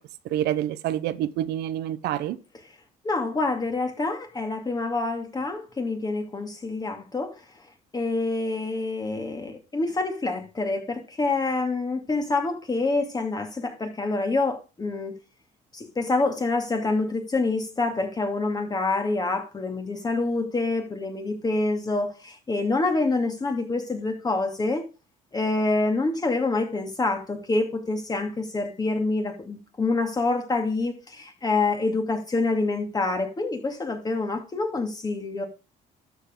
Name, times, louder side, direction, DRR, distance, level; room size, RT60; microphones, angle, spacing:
voice 1, 0.2-2.4, right 12 dB, 80° right, 0.8 m, -27 dB
voice 2, 3.0-7.4 7.9-15.1 15.7-24.9 25.3-35.4, left 3 dB, 25° left, 2.5 m, -26 dB
13.0 x 7.2 x 3.8 m
cardioid pair, 110°, 17 cm